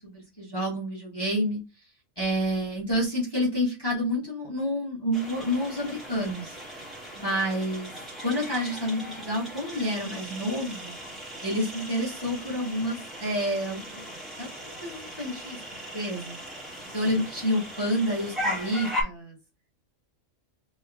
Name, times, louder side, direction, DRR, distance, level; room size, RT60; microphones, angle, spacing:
voice 1, 0.0-1.6 2.2-6.5 7.1-7.9 8.2-10.9 11.4-14.0 14.4-15.6 15.9-16.4 16.9-19.3, equal, 20° left, -6 dB, 1.5 m, -29 dB
sound 1, 5.1-19.0, equal, ahead, 1.8 m, -38 dB
3.4 x 3.2 x 3.4 m, 0.28 s
omnidirectional pair, 1.4 m